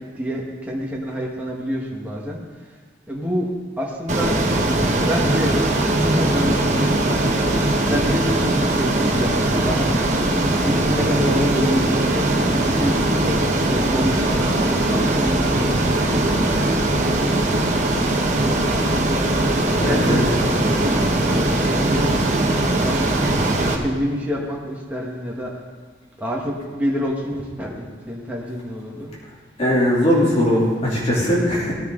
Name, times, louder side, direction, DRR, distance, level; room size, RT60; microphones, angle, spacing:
voice 1, 0.2-2.4 3.1-3.5 3.8-4.3 5.1-5.5 5.8-7.6 7.9-10.3 10.6-16.6 19.9-22.1 22.8-23.3 23.5-25.5 26.2-29.1, equal, 10° right, -4 dB, 1.5 m, -27 dB
Ocean, 4.1-23.7, right 1 dB, 40° right, 1.2 m, -20 dB
voice 2, 19.8-20.2 29.6-31.7, equal, 35° left, -5 dB, 3.0 m, -19 dB
16.5 x 9.9 x 3.9 m, 1.5 s
head